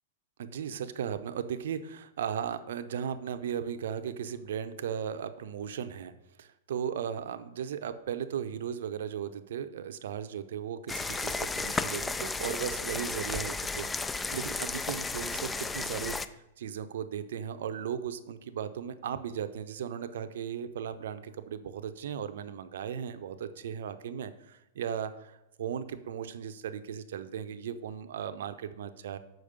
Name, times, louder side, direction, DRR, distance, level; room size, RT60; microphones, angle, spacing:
voice 1, 0.4-6.1 6.4-13.9 14.3-29.2, right 8 dB, 70° right, 10 dB, 0.6 m, -36 dB
sound 1, 10.9-16.3, left 3 dB, 10° left, 0.4 m, -33 dB
6.3 x 5.1 x 6.7 m, 0.96 s
hypercardioid pair, 115°, 0 cm